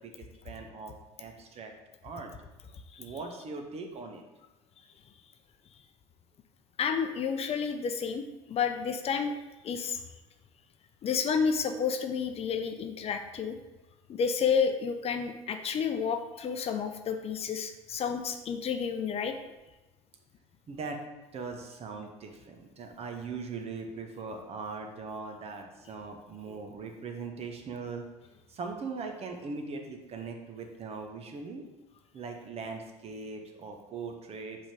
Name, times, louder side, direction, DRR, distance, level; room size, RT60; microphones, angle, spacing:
voice 1, 0.0-1.7 2.0-2.3 3.0-4.2 20.7-21.0 21.3-28.0 28.5-31.6 32.1-34.6, right 4 dB, 40° right, 4 dB, 1.0 m, -40 dB
voice 2, 6.8-9.3 9.6-10.0 11.0-13.6 14.1-19.3, left 6 dB, 40° left, 7 dB, 0.6 m, -30 dB
5.1 x 3.6 x 5.0 m, 1.1 s
hypercardioid pair, 70°, 15 cm